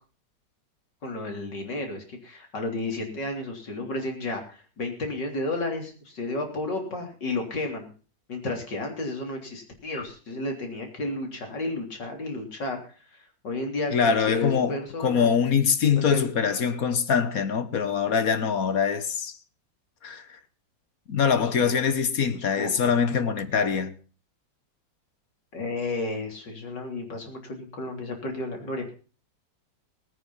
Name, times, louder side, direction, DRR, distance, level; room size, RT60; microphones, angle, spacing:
voice 1, 1.0-7.9 8.3-12.8 13.1-15.3 16.1-16.3 21.4-21.8 22.2-23.0 25.5-28.9, left 2 dB, 75° left, 4.0 m, -32 dB
voice 2, 13.9-19.4 20.0-20.2 21.1-23.9, left 6 dB, 55° left, 1.5 m, -23 dB
19.5 x 9.2 x 5.5 m
omnidirectional pair, 1.9 m